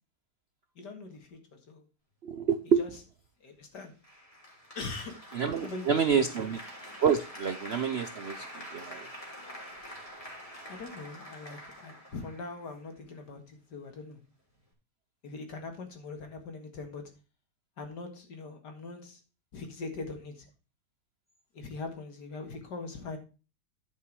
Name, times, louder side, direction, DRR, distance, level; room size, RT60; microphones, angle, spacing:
voice 1, 0.8-1.8 2.8-2.9 3.4-3.9 4.7-5.2 5.6-6.2 10.7-14.2 15.2-17.0 17.8-19.2 19.5-20.5 21.5-23.2, left 3 dB, 75° left, 5 dB, 2.5 m, -41 dB
voice 2, 2.2-2.8 5.3-6.6 7.0-9.1, right 7 dB, 60° right, 9 dB, 0.6 m, -28 dB
Applause, 4.0-13.1, equal, 20° left, 3.1 m, -46 dB
10.5 x 5.5 x 4.7 m, 0.33 s
omnidirectional pair, 1.8 m